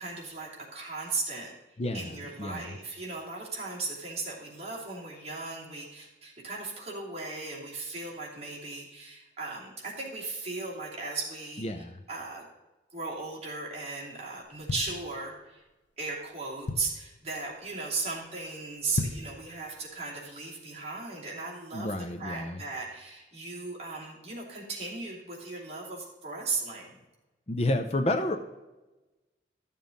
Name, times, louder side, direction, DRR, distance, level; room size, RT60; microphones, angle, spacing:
voice 1, 0.0-1.5 1.9-12.4 12.9-15.6 16.0-27.0, right 3 dB, 35° right, -5 dB, 2.7 m, -37 dB
voice 2, 1.8-2.8 11.6-12.0 21.7-22.6 27.5-28.4, left 1 dB, 35° left, 7 dB, 0.6 m, -30 dB
sound 1, 14.4-15.6 16.1-16.2 16.4-17.2 17.6-17.9 18.2-18.3 18.8-19.4 19.8-19.9, left 3 dB, 85° left, 0.6 m, -35 dB
13.0 x 7.1 x 3.9 m, 1.1 s
head